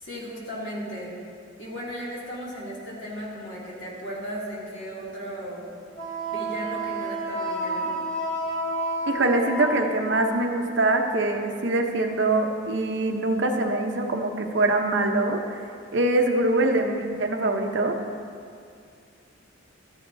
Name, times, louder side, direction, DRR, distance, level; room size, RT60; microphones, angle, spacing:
voice 1, 0.0-1.1 1.6-5.7 6.2-7.9, equal, 65° left, -6 dB, 2.6 m, -36 dB
Wind instrument woodwind instrument, 5.9-10.4, right 1 dB, 5° left, 2.3 m, -30 dB
voice 2, 9.1-15.6 15.9-18.0, right 2 dB, 65° right, 3 dB, 0.8 m, -23 dB
13.0 x 10.0 x 2.7 m, 2.3 s
head